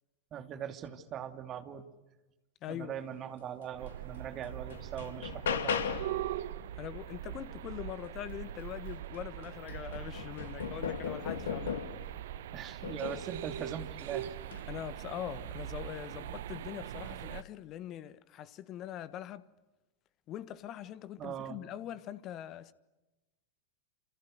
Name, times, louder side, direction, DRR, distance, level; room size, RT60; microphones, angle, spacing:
voice 1, 0.3-1.8 2.7-5.8 12.5-14.3 21.2-21.6, right 9 dB, 30° right, 2.9 m, -41 dB
voice 2, 2.6-3.0 6.8-11.8 14.7-19.5 20.3-22.7, left 11 dB, 35° left, 1.4 m, -42 dB
sound 1, 3.8-17.4, right 12 dB, 55° right, 1.0 m, -42 dB
sound 2, 3.9-4.0 4.4-6.3 8.6-8.7 9.1-12.1 12.8-13.4 14.4-14.7, left 7 dB, 60° left, 2.5 m, -37 dB
29.5 x 29.0 x 6.7 m
figure-of-eight pair, 90°, 0 cm